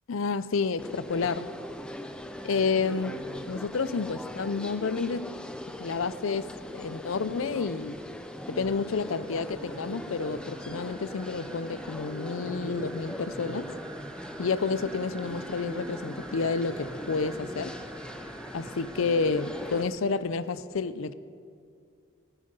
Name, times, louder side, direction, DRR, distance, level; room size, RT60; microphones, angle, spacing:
voice 1, 0.1-1.5 2.4-3.1 3.5-5.3 5.8-8.0 8.5-13.7 14.4-17.8 18.5-21.1, left 4 dB, 90° left, 0.6 m, -30 dB
sound 1, 0.8-19.9, equal, 5° left, 0.6 m, -40 dB
sound 2, 5.9-19.8, right 3 dB, 15° right, 1.0 m, -50 dB
18.5 x 9.1 x 5.5 m
head